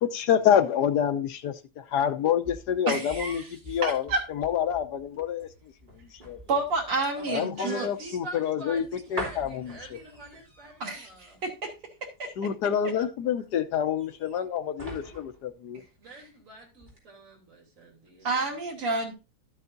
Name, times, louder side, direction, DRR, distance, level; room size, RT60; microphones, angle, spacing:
voice 1, 0.0-4.0 4.3-5.5 6.2-6.4 7.3-8.8 9.1-9.8 12.4-15.8, left 9 dB, 65° left, 1.1 m, -27 dB
sound 1, 2.1-16.4 16.8-17.0, right 1 dB, 20° right, 3.3 m, -45 dB
voice 2, 2.9-3.5 3.8-4.2 6.5-7.9 10.8-11.1 11.4-11.7 12.0-12.3 18.2-19.1, right 3 dB, 80° right, 3.2 m, -29 dB
voice 3, 7.1-11.4 16.0-18.6, right 1 dB, 35° right, 3.3 m, -45 dB
12.5 x 8.3 x 2.6 m
omnidirectional pair, 2.4 m